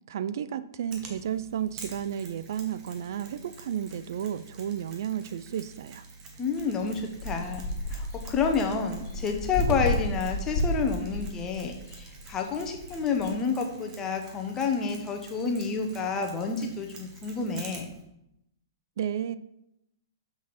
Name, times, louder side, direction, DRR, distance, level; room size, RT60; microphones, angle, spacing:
voice 1, 0.1-6.0 19.0-19.4, right 9 dB, 65° right, 14 dB, 0.3 m, -32 dB
Mechanisms, 0.9-18.0, right 4 dB, 30° right, 1.5 m, -48 dB
voice 2, 6.4-7.6 7.9-17.9, left 5 dB, 20° left, 3 dB, 1.1 m, -29 dB
sound 1, 6.6-13.4, left 1 dB, 45° left, 1.4 m, -33 dB
6.2 x 6.1 x 4.2 m, 0.83 s
hypercardioid pair, 130°, 2 cm